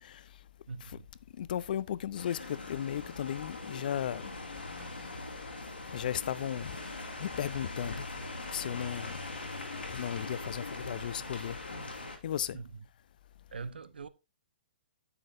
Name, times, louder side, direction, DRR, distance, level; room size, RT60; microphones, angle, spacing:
voice 1, 0.7-1.1 12.5-12.8 13.5-14.1, right 4 dB, 75° right, 0.8 m, -42 dB
voice 2, 1.3-4.3 4.9-5.3 5.9-6.8 7.2-8.1 8.5-9.2 9.9-11.6 12.2-12.6, left 10 dB, 55° left, 0.5 m, -35 dB
sound 1, 2.2-12.2, left 2 dB, 85° left, 2.3 m, -41 dB
9.7 x 7.8 x 2.6 m
figure-of-eight pair, 120°, 5 cm